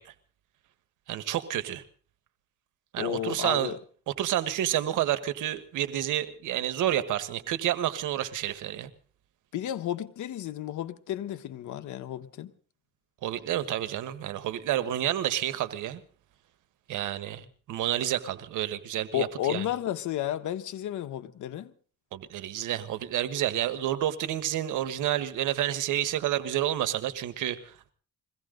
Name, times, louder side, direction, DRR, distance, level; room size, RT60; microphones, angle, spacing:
voice 1, 1.1-1.8 2.9-3.8 4.2-8.9 13.2-16.0 16.9-19.6 22.1-27.9, right 12 dB, 85° right, 1.5 m, -29 dB
voice 2, 3.0-3.8 9.5-12.5 19.1-21.7, left 11 dB, 75° left, 1.3 m, -32 dB
22.5 x 16.5 x 3.9 m
cardioid pair, 90°, 30 cm